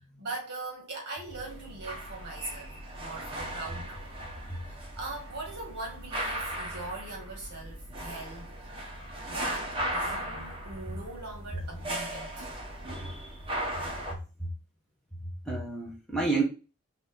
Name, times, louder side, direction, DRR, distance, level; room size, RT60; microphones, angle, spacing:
voice 1, 0.2-2.7 3.0-4.0 4.7-8.7 9.3-12.5, right 2 dB, 50° right, 2.1 m, -41 dB
sound 1, 1.3-14.1, right 1 dB, 25° right, 1.0 m, -37 dB
voice 2, 12.9-13.4 15.5-16.4, right 3 dB, ahead, 0.9 m, -30 dB
4.0 x 3.5 x 3.7 m
head